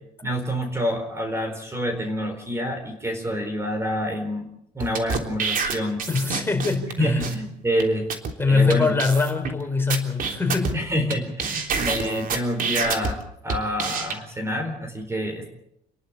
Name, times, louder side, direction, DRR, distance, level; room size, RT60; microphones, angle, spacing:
voice 1, 0.2-4.5 4.7-6.0 7.0-8.1 8.4-8.9 10.7-15.5, equal, 15° right, 6 dB, 4.3 m, -27 dB
sound 1, 4.8-6.9 7.2-7.4 7.8-7.9 8.1-8.3 8.7-8.8 9.0-9.5 9.9-11.1 11.4-13.1 13.5-14.1, right 5 dB, 55° right, 3.4 m, -27 dB
voice 2, 6.1-7.3 8.4-10.8 11.7-11.8, left 4 dB, 15° left, 4 dB, 4.9 m, -23 dB
30.0 x 11.5 x 8.9 m, 0.77 s
cardioid pair, 110°, 17 cm